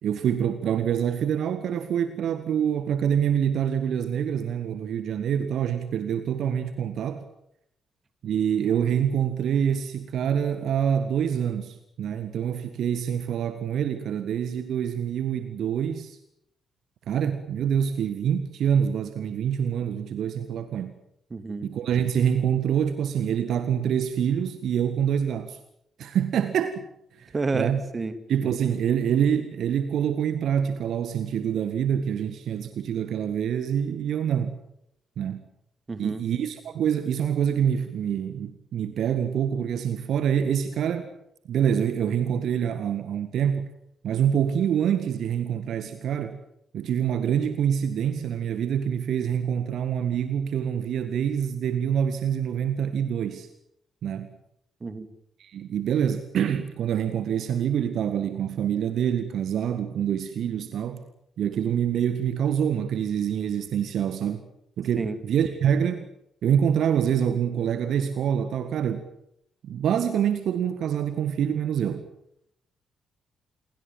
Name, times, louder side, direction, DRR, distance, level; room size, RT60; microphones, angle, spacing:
voice 1, 0.0-7.2 8.2-16.2 17.1-20.9 21.6-25.6 26.0-26.9 27.2-27.8 28.3-34.6 35.2-35.4 36.0-41.1 41.5-43.7 44.0-46.4 46.7-53.5 54.0-54.3 55.4-61.0 61.4-64.4 64.8-66.0 66.4-69.1 69.6-72.1, right 8 dB, 55° right, 11 dB, 1.7 m, -26 dB
voice 2, 21.3-21.7 27.3-28.2 35.9-36.2 54.8-55.1 65.0-65.2, right 3 dB, 30° right, 11 dB, 2.8 m, -30 dB
28.0 x 22.0 x 7.5 m, 0.76 s
figure-of-eight pair, 40°, 0 cm